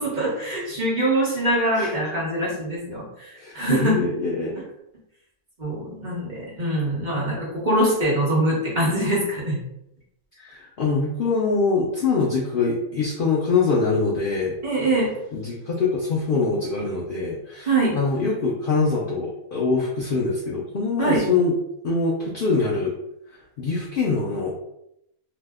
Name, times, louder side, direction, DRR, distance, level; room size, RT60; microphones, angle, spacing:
voice 1, 0.0-4.0 5.6-9.6 14.6-15.2 17.7-18.0 21.0-21.2, right 1 dB, 35° right, -6 dB, 0.9 m, -23 dB
voice 2, 3.4-4.6 10.4-14.6 15.3-21.5 21.8-22.9 23.6-24.5, left 4 dB, 80° left, -4 dB, 0.4 m, -24 dB
2.8 x 2.0 x 3.4 m, 0.80 s
omnidirectional pair, 1.5 m